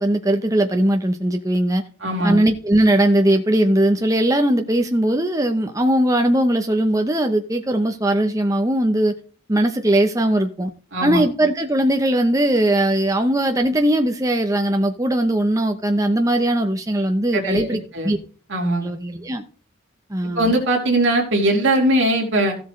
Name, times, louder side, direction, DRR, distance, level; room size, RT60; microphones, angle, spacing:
voice 1, 0.0-1.8 2.2-9.1 9.5-10.7 11.0-18.2 18.8-19.4 20.1-20.5, right 1 dB, 15° right, 0.8 m, -19 dB
voice 2, 2.0-2.4 10.9-11.2 17.3-18.1 18.5-18.9 20.3-22.6, right 1 dB, 70° right, 3.3 m, -20 dB
15.5 x 7.7 x 3.2 m
head